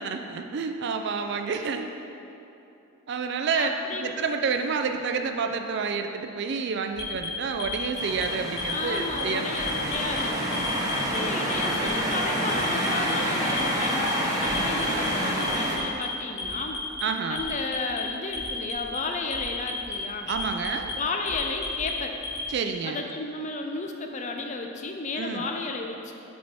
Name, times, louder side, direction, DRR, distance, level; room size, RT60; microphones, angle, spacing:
voice 1, 0.0-1.9 3.1-3.7 4.0-9.9 17.0-17.5 20.3-20.9 22.5-23.0 25.2-25.5, right 5 dB, 50° right, 6 dB, 0.3 m, -29 dB
voice 2, 3.5-4.2 8.7-10.4 11.1-16.8 17.3-20.3 21.0-22.2 22.8-26.1, left 3 dB, 35° left, 3 dB, 0.5 m, -33 dB
Alarm, 6.9-8.2 8.6-9.2 9.5-10.2 10.5-11.2 11.5-12.1 12.5-13.1 13.5-14.1 14.4-15.1 15.4-16.0 16.4-17.0 17.4-18.0 18.3-19.0 19.3-19.9 20.3-20.9 21.3-22.4, left 3 dB, 55° left, 1.5 m, -34 dB
sound 1, 8.0-15.8, equal, 15° right, 0.8 m, -28 dB
6.2 x 4.2 x 5.9 m, 2.8 s
head